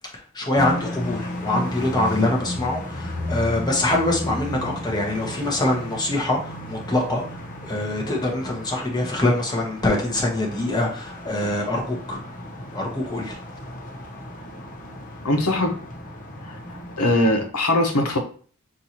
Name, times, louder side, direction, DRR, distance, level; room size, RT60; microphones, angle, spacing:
voice 1, 0.1-12.2 12.7-13.4, left 1 dB, 20° left, -1 dB, 1.1 m, -24 dB
sound 1, 0.6-17.5, left 1 dB, 40° left, 0.8 m, -34 dB
voice 2, 15.2-15.8 16.4-18.2, left 1 dB, 80° left, 3 dB, 1.0 m, -21 dB
6.4 x 2.7 x 2.9 m, 0.43 s
head